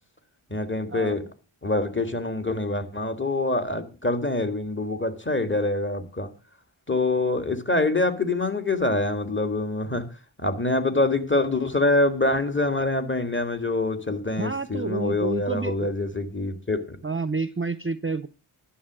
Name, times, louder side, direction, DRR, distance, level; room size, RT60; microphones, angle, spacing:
voice 1, 0.5-1.2 1.6-6.3 6.9-10.0 10.4-17.0, left 2 dB, 25° left, 7 dB, 1.9 m, -25 dB
voice 2, 14.4-15.9 17.0-18.3, right 3 dB, 25° right, 13 dB, 0.6 m, -29 dB
11.0 x 7.2 x 6.1 m, 0.35 s
wide cardioid pair, 45°, 50 cm